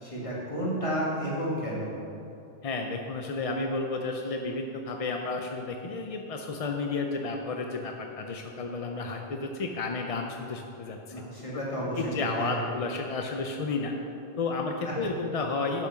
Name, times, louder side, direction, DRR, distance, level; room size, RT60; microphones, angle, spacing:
voice 1, 0.0-1.9 11.1-12.6 14.8-14.9, right 1 dB, 25° left, -6 dB, 2.3 m, -31 dB
voice 2, 2.6-11.0 12.0-13.9 14.4-15.9, left 3 dB, 45° left, 3 dB, 0.4 m, -32 dB
10.5 x 5.9 x 5.8 m, 2.9 s
omnidirectional pair, 1.3 m